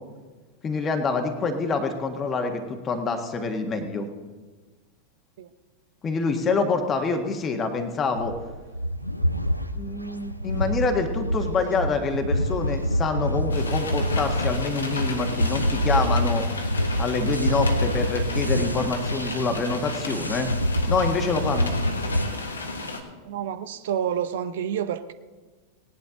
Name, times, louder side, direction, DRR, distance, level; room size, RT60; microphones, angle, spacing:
voice 1, 0.6-4.1 6.0-8.3 9.7-16.4 17.0-20.5 20.9-21.7, left 4 dB, 25° left, 5 dB, 1.5 m, -26 dB
sound 1, 8.2-22.2, equal, 90° left, 0.6 m, -26 dB
sound 2, 13.5-23.0, left 3 dB, 75° left, 1.6 m, -34 dB
voice 2, 23.2-25.1, right 9 dB, 55° right, 12 dB, 0.8 m, -29 dB
18.5 x 10.5 x 3.8 m, 1.4 s
figure-of-eight pair, 90°, 0 cm